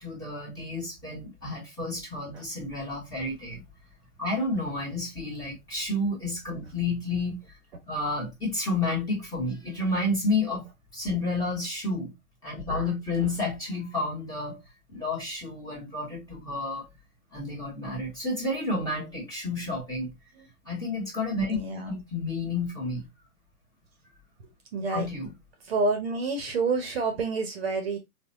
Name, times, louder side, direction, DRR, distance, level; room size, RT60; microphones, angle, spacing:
voice 1, 0.0-3.6 4.2-7.6 7.9-10.6 10.9-12.1 12.4-14.6 14.9-16.9 17.3-20.1 20.6-21.6 21.9-23.1 24.9-25.3, left 2 dB, 10° left, 1.2 m, -30 dB
voice 2, 12.7-13.3 21.5-22.0 24.7-25.1 25.7-28.0, right 3 dB, 45° right, 0.8 m, -29 dB
3.9 x 2.3 x 2.6 m
hypercardioid pair, 140°, 44 cm